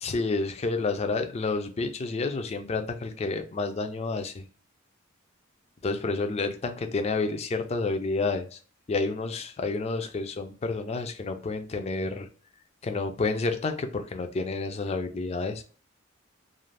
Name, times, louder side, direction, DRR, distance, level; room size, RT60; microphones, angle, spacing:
voice 1, 0.0-4.4 5.8-8.6 8.9-12.3 12.8-15.6, left 3 dB, 35° left, 7 dB, 0.4 m, -29 dB
2.5 x 2.4 x 3.2 m, 0.40 s
head